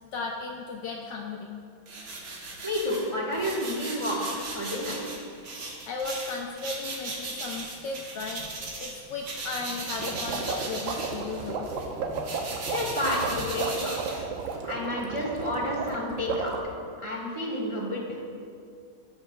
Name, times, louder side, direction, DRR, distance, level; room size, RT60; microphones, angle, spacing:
voice 1, 0.1-1.5 5.9-12.8 13.4-13.5, left 4 dB, 75° left, 0 dB, 1.1 m, -36 dB
sound 1, 1.9-8.9 9.2-14.7, right 2 dB, 55° right, 1.6 m, -38 dB
voice 2, 2.6-5.1 12.7-14.2 14.6-16.6 17.0-18.3, left 1 dB, 25° right, -5 dB, 0.8 m, -30 dB
sound 2, 10.0-16.6, right 5 dB, 75° right, 1.3 m, -33 dB
14.5 x 5.5 x 2.2 m, 2.3 s
omnidirectional pair, 2.3 m